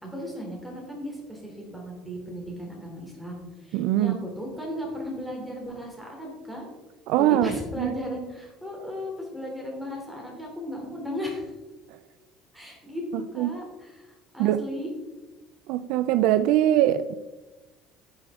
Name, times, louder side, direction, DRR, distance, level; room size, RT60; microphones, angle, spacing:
voice 1, 0.0-6.7 7.2-11.5 12.5-14.9, equal, ahead, -1 dB, 3.1 m, -36 dB
voice 2, 3.7-4.2 7.1-7.9 13.1-13.5 14.4-14.6 15.7-17.1, right 12 dB, 70° right, 14 dB, 0.4 m, -22 dB
11.5 x 7.5 x 3.7 m, 1.1 s
cardioid pair, 140°, 0 cm